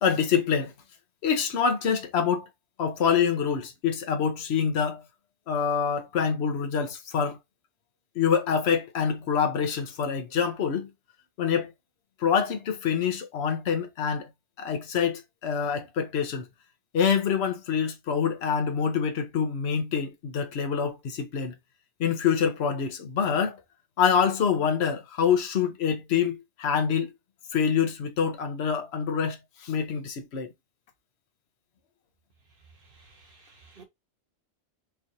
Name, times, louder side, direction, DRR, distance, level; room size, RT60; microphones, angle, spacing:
voice 1, 0.0-0.7 1.2-2.5 2.8-5.0 5.5-7.4 8.2-10.9 11.4-11.7 12.2-14.3 14.6-16.4 16.9-21.5 22.0-23.6 24.0-27.1 27.5-29.4 29.6-30.5, left 7 dB, 70° left, 1.1 m, -26 dB
voice 2, 32.6-33.8, right 4 dB, 50° right, 1.3 m, -54 dB
4.6 x 2.5 x 2.8 m
omnidirectional pair, 1.2 m